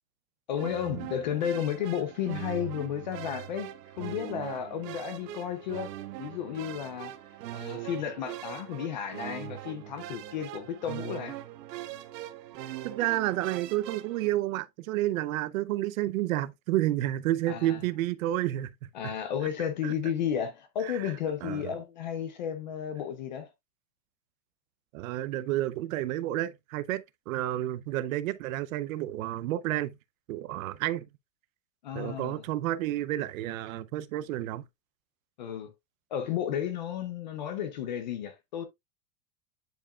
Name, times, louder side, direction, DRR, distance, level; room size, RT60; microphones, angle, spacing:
voice 1, 0.5-5.9 6.2-7.1 7.5-11.4 17.5-17.8 18.9-23.5 31.8-32.4 35.4-35.7 36.1-38.6, left 9 dB, 30° left, 0.4 m, -33 dB
sound 1, 0.5-14.3, right 13 dB, 75° right, 1.1 m, -41 dB
voice 2, 12.8-18.7 19.0-19.1 19.8-19.9 20.8-21.1 21.4-21.6 24.9-29.9 30.3-31.1 31.9-34.6, right 14 dB, 55° right, 0.6 m, -30 dB
10.0 x 4.6 x 2.3 m
supercardioid pair, 170°, 50 cm